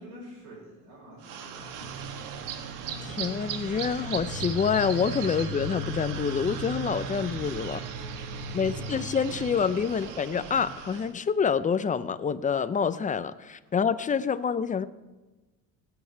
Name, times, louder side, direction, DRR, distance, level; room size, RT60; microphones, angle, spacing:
voice 1, 0.0-2.2 7.9-8.9 9.9-10.0, equal, 90° right, -4 dB, 5.7 m, -48 dB
sound 1, 1.2-11.1, right 5 dB, 65° right, 1.5 m, -36 dB
voice 2, 3.0-7.8 8.5-14.9, left 6 dB, 20° left, 14 dB, 0.6 m, -27 dB
19.0 x 8.9 x 4.6 m, 1.2 s
cardioid pair, 110°, 34 cm